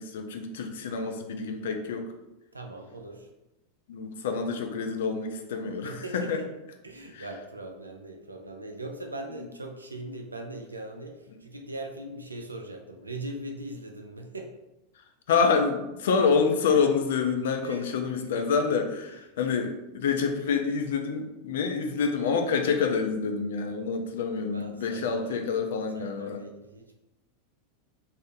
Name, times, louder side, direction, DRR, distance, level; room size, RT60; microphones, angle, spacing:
voice 1, 0.0-2.1 3.9-6.4 15.3-26.4, left 5 dB, 65° left, 5 dB, 0.3 m, -27 dB
voice 2, 2.5-3.3 5.8-6.5 6.8-14.5 17.6-17.9 18.3-18.4 19.1-19.2 24.5-25.7 25.9-26.9, right 2 dB, 85° right, 3 dB, 0.3 m, -40 dB
2.6 x 2.0 x 2.6 m, 0.96 s
figure-of-eight pair, 90°, 0 cm